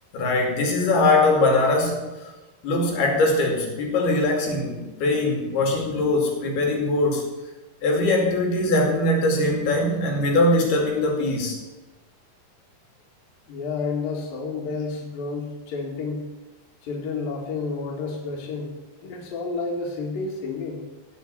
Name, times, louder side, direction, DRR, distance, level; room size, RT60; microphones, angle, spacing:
voice 1, 0.1-2.1 2.6-7.3 7.8-11.6, left 2 dB, 85° left, 1 dB, 4.7 m, -21 dB
voice 2, 13.5-16.3 16.8-18.7 19.0-20.8, left 4 dB, 65° left, -1 dB, 3.8 m, -30 dB
16.0 x 6.5 x 8.4 m, 1.1 s
omnidirectional pair, 4.4 m